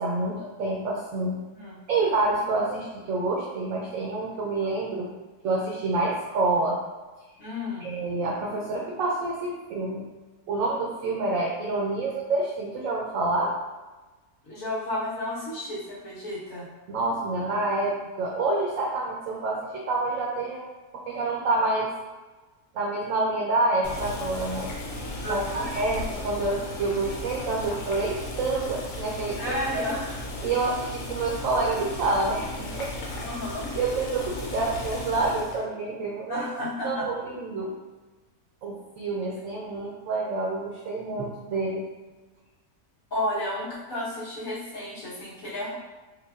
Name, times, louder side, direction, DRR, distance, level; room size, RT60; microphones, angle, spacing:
voice 1, 0.0-1.4 1.9-5.1 5.4-6.8 7.8-10.1 10.5-13.5 16.9-20.7 21.1-21.9 22.7-24.7 25.3-29.4 29.7-29.8 30.4-32.9 33.2-33.3 33.7-36.4 36.8-37.7 38.6-41.8, right 2 dB, 70° right, -3 dB, 0.9 m, -27 dB
voice 2, 7.4-7.9 14.4-16.7 25.2-25.7 29.4-30.2 33.2-33.7 36.3-37.1 43.1-45.8, left 1 dB, 60° left, -8 dB, 1.6 m, -32 dB
Boiling, 23.8-35.6, left 2 dB, 85° left, 1.2 m, -36 dB
4.7 x 2.2 x 2.4 m, 1.2 s
omnidirectional pair, 1.6 m